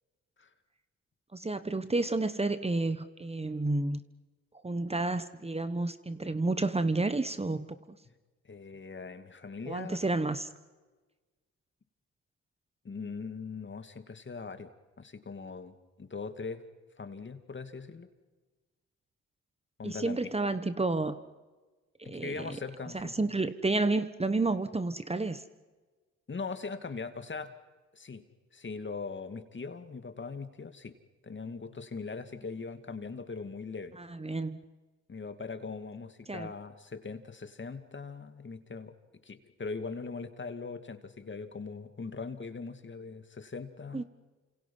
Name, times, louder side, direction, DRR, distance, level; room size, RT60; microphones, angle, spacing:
voice 1, 1.3-4.0 4.6-8.0 9.6-10.5 19.8-21.2 22.0-22.6 22.9-25.4 33.9-34.6 36.3-36.5 43.9-44.0, right 2 dB, 20° right, 11 dB, 1.3 m, -31 dB
voice 2, 8.4-10.0 12.8-14.7 15.0-16.6 17.0-18.1 19.8-20.3 22.0-23.3 26.3-27.5 27.9-28.2 28.5-31.0 31.2-34.0 35.1-38.9 39.2-44.1, left 4 dB, 40° left, 9 dB, 2.4 m, -40 dB
29.5 x 27.0 x 5.6 m, 1.3 s
supercardioid pair, 50°, 30 cm